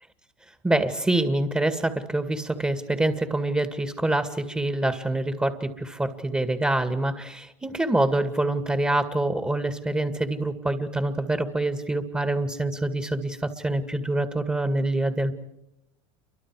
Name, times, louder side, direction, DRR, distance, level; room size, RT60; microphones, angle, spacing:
voice 1, 0.6-15.3, right 2 dB, 10° right, 8 dB, 2.1 m, -26 dB
29.0 x 24.5 x 4.9 m, 0.88 s
supercardioid pair, 95°, 17 cm